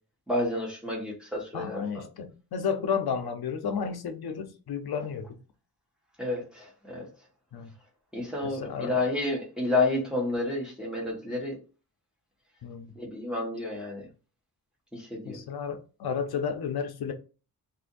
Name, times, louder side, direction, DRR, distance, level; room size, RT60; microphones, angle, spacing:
voice 1, 0.3-1.8 6.2-7.1 8.1-11.6 13.0-14.1 14.9-15.4, left 2 dB, ahead, 1.0 m, -30 dB
voice 2, 1.5-5.4 7.5-7.7 8.4-9.0 12.6-12.9 15.2-17.1, left 6 dB, 85° left, 0.6 m, -32 dB
2.7 x 2.5 x 3.8 m
wide cardioid pair, 160°, 37 cm